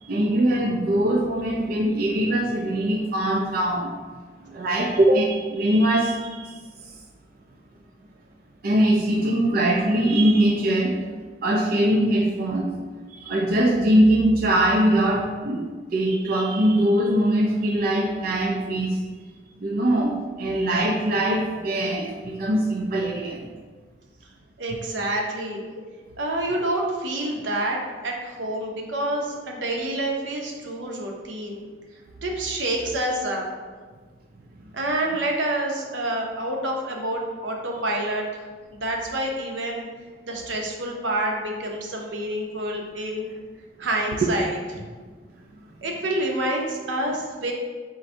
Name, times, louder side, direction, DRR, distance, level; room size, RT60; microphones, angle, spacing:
voice 1, 0.0-4.0 4.5-6.6 8.6-11.0 11.4-12.7 13.1-19.0 19.6-23.5 44.2-44.3, right 1 dB, 50° right, 0 dB, 0.4 m, -22 dB
voice 2, 24.6-25.6 26.2-31.6 32.2-33.5 34.7-38.5 38.7-39.9 40.3-43.3 43.8-44.5 45.8-47.5, right 1 dB, 85° right, 0 dB, 0.7 m, -27 dB
3.8 x 2.6 x 4.3 m, 1.4 s
head